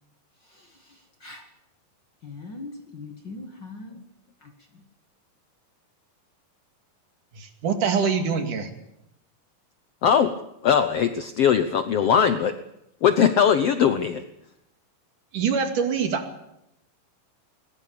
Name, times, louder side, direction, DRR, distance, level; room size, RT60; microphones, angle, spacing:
voice 1, 0.4-1.5 2.2-4.0 4.4-4.8, left 3 dB, 40° left, 5 dB, 1.8 m, -42 dB
voice 2, 7.3-8.7 15.3-16.5, right 6 dB, 60° right, 5 dB, 3.7 m, -25 dB
voice 3, 10.0-10.4 10.6-12.5 13.0-14.2, left 8 dB, 90° left, 10 dB, 1.3 m, -20 dB
20.5 x 19.5 x 8.6 m, 0.84 s
omnidirectional pair, 4.1 m